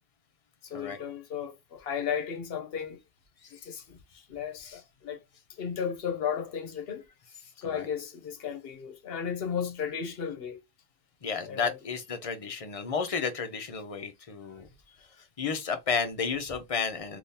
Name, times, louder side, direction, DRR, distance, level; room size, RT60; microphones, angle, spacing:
voice 1, 0.6-3.0 3.6-5.2 5.6-7.1 7.6-10.6 11.4-11.8 14.5-14.6, left 7 dB, 65° left, 0.9 m, -34 dB
voice 2, 11.2-14.7 15.4-17.2, left 5 dB, 40° left, 0.6 m, -32 dB
3.7 x 2.7 x 2.7 m
omnidirectional pair, 1.1 m